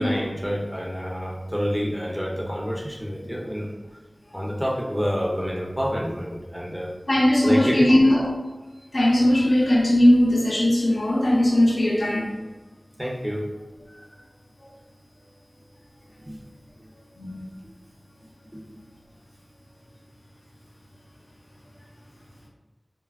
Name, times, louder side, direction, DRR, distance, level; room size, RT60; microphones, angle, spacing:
voice 1, 0.0-3.7 4.3-6.9 7.4-7.9 13.0-13.5 16.3-16.4 18.5-18.6, equal, 5° right, -3 dB, 0.6 m, -28 dB
voice 2, 7.1-8.3 8.9-12.4 13.9-14.0 17.2-17.4, left 1 dB, 65° left, -4 dB, 0.5 m, -19 dB
3.1 x 2.2 x 2.3 m, 1.1 s
wide cardioid pair, 50°, 0 cm